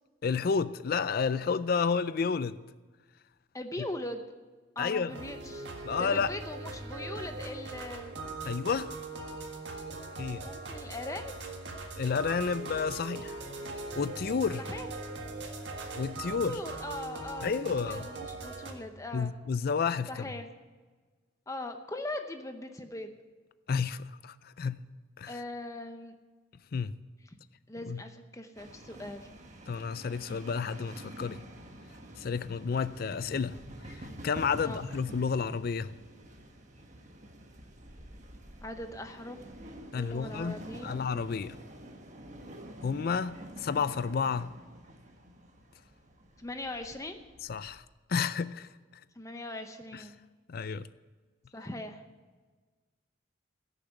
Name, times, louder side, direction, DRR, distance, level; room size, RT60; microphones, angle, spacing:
voice 1, 0.2-2.6 4.8-5.1 5.8-6.3 8.5-8.9 10.2-10.5 12.0-13.4 13.9-14.6 15.9-16.6 17.4-18.0 19.1-20.2 23.7-24.8 25.2-25.4 26.7-27.0 27.9-28.0 29.7-31.4 32.2-33.6 33.9-35.9 39.9-40.6 40.8-41.6 42.8-44.5 47.5-47.8 48.1-48.7 49.9-50.0 50.5-50.9, left 5 dB, 50° left, 0.4 m, -31 dB
voice 2, 3.5-4.2 4.8-5.7 6.0-8.1 10.4-11.4 14.7-14.9 16.4-17.5 17.8-19.3 20.1-20.5 21.5-23.1 25.3-26.1 27.7-29.3 34.6-34.8 38.6-39.4 39.9-41.0 46.4-47.2 49.2-50.2 51.5-52.0, left 1 dB, 15° left, 0.8 m, -40 dB
sound 1, 5.1-18.7, right 3 dB, 60° right, 1.7 m, -40 dB
sound 2, 28.6-47.8, right 1 dB, 35° right, 1.5 m, -48 dB
16.5 x 7.0 x 8.0 m
head